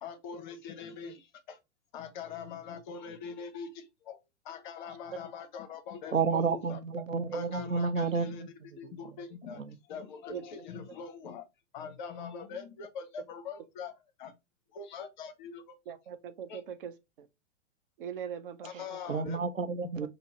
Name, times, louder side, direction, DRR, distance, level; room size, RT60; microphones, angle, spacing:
voice 1, 0.0-1.6 1.9-6.8 7.3-8.4 8.8-9.6 9.9-11.4 11.7-14.3 14.7-15.8 16.5-16.6 18.6-19.4, left 6 dB, 40° left, 0.6 m, -43 dB
voice 2, 6.1-8.5 8.8-9.1 9.5-9.8 18.7-20.1, right 5 dB, 90° right, 0.6 m, -31 dB
voice 3, 7.3-7.7 10.3-10.4 15.9-17.3 18.0-19.0 20.0-20.1, right 8 dB, 45° right, 0.5 m, -41 dB
5.3 x 2.0 x 2.8 m
figure-of-eight pair, 105°, 38 cm